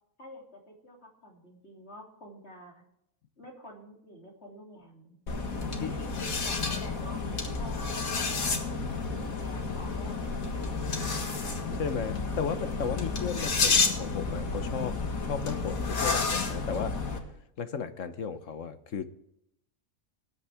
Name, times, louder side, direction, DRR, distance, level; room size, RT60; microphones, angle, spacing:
voice 1, 0.2-2.7 3.4-5.2 5.6-8.8 9.2-10.7, equal, 50° left, 0 dB, 3.4 m, -49 dB
sound 1, 5.3-17.2, left 4 dB, 90° left, 2.1 m, -30 dB
voice 2, 11.8-15.0 15.2-17.0 17.6-19.0, left 6 dB, 65° left, 10 dB, 1.3 m, -34 dB
19.5 x 8.6 x 3.5 m, 0.78 s
omnidirectional pair, 1.4 m